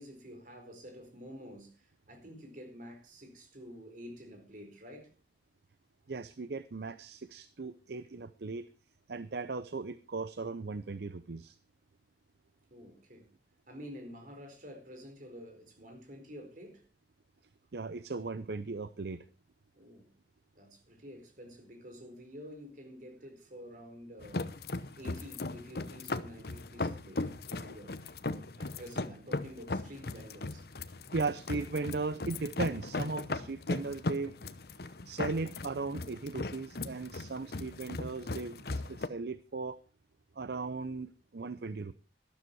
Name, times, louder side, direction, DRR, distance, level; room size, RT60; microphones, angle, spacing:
voice 1, 0.0-5.1 12.7-13.3 13.7-16.8 19.7-20.1 20.6-24.5 25.0-27.9 28.6-30.7, equal, 50° right, 4 dB, 4.6 m, -49 dB
voice 2, 6.1-8.7 9.1-11.6 17.7-19.2 31.1-34.4 35.1-39.8 40.4-41.9, right 3 dB, 65° right, 13 dB, 0.6 m, -37 dB
sound 1, 24.2-39.1, left 2 dB, 60° left, 0.9 m, -38 dB
12.5 x 12.5 x 4.6 m, 0.34 s
head